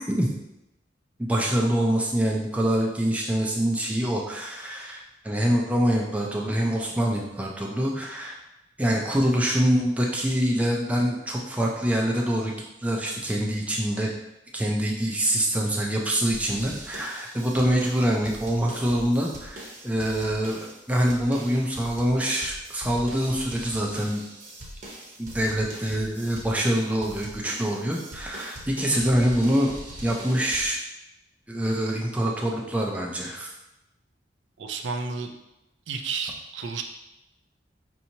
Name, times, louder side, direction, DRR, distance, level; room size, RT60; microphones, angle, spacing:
voice 1, 1.2-8.4 8.8-12.5 12.8-14.1 14.5-24.2 25.2-30.8 31.5-33.5, equal, 10° right, -2 dB, 0.4 m, -25 dB
sound 1, 16.3-30.7, right 1 dB, 40° right, 0.9 m, -41 dB
voice 2, 34.6-35.3 35.9-36.8, right 5 dB, 80° right, 5 dB, 0.4 m, -31 dB
5.4 x 2.9 x 2.7 m, 0.91 s
head